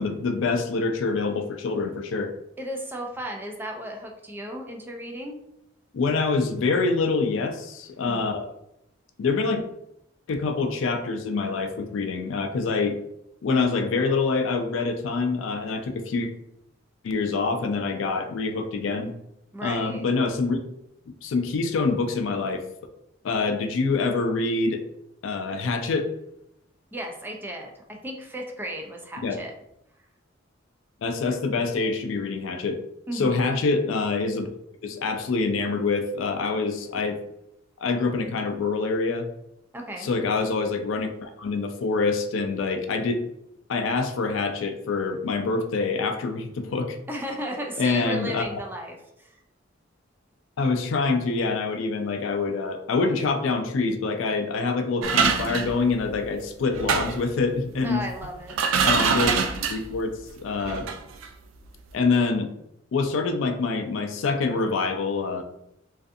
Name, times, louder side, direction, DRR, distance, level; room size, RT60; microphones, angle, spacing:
voice 1, 0.0-2.3 5.9-8.5 9.2-9.6 10.3-13.0 13.4-16.3 17.0-19.1 19.6-20.6 21.2-22.6 23.2-24.8 25.2-26.1 29.2-29.4 31.0-32.8 33.1-34.5 34.8-37.2 37.8-39.3 40.0-43.2 43.7-47.0 47.8-48.5 50.6-58.0 58.8-59.4 59.7-60.9 61.9-62.5 62.9-65.4, left 4 dB, 75° left, 6 dB, 0.4 m, -25 dB
voice 2, 2.6-5.4 8.0-8.3 19.5-20.1 26.9-29.5 33.1-33.4 39.7-40.1 47.1-49.4 57.8-58.6, equal, 10° right, 1 dB, 0.3 m, -35 dB
sound 1, 55.0-56.3 56.7-57.3 58.2-58.3 58.5-60.0 60.6-61.0 61.2-61.3, right 6 dB, 90° right, 0.3 m, -24 dB
2.5 x 2.4 x 2.5 m, 0.80 s
head